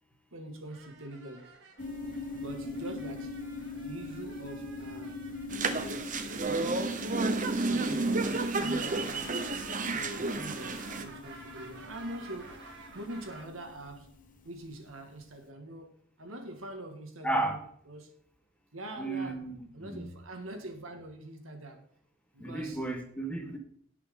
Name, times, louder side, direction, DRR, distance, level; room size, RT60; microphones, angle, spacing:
voice 1, 0.3-1.5 2.3-3.4 3.8-5.2 5.7-7.0 7.4-9.4 9.9-12.7 12.9-14.1 14.4-17.6 17.9-18.1 18.7-19.4 19.7-21.8 22.3-22.8, right 1 dB, 80° right, 2.1 m, -44 dB
sound 1, 0.7-7.6 8.0-13.4, right 3 dB, 60° right, 2.6 m, -51 dB
sound 2, 1.8-15.2, left 3 dB, 40° left, 1.0 m, -43 dB
sound 3, 5.5-11.0, right 3 dB, 40° right, 1.1 m, -31 dB
voice 2, 17.2-17.6 19.0-20.1 22.4-23.6, right 2 dB, 5° left, 1.5 m, -33 dB
17.5 x 6.0 x 3.9 m
head